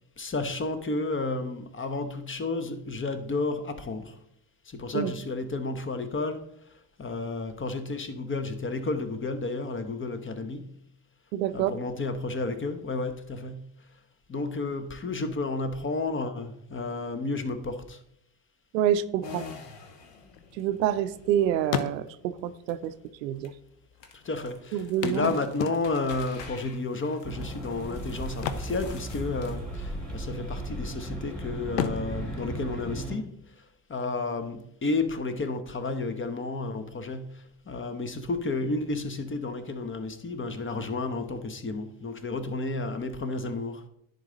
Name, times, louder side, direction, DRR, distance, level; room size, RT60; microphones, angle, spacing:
voice 1, 0.2-4.1 4.7-6.4 7.0-10.8 11.5-13.7 14.3-18.0 24.1-33.3 33.9-43.8, left 3 dB, 25° left, 0.9 m, -32 dB
voice 2, 11.3-11.7 18.7-19.5 20.6-22.9 23.2-23.5 24.7-25.3, right 10 dB, 85° right, 0.6 m, -27 dB
sound 1, 19.2-33.4, left 5 dB, 60° left, 1.4 m, -48 dB
sound 2, 20.0-21.3 21.6-22.4 23.4-23.5 23.7-23.8 25.0-26.2 28.3-29.6 29.8-30.1 30.6-31.2 31.7-33.4 35.4-35.5 36.0-36.1, left 8 dB, 80° left, 0.7 m, -34 dB
sound 3, 27.2-33.2, right 1 dB, ahead, 3.2 m, -36 dB
10.5 x 3.9 x 3.9 m
hypercardioid pair, 65°, 49 cm